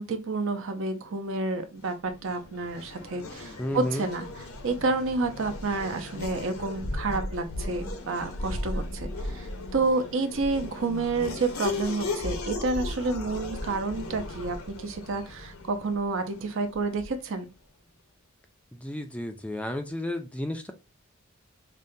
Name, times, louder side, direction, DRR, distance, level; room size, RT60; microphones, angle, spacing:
voice 1, 0.0-17.5, right 3 dB, 65° right, 0.6 m, -30 dB
Race car auto racing / Accelerating revving vroom, 1.7-17.3, left 2 dB, 75° left, 0.8 m, -37 dB
voice 2, 3.6-4.1 18.7-20.7, left 1 dB, 5° left, 0.4 m, -32 dB
5.3 x 2.2 x 2.6 m
head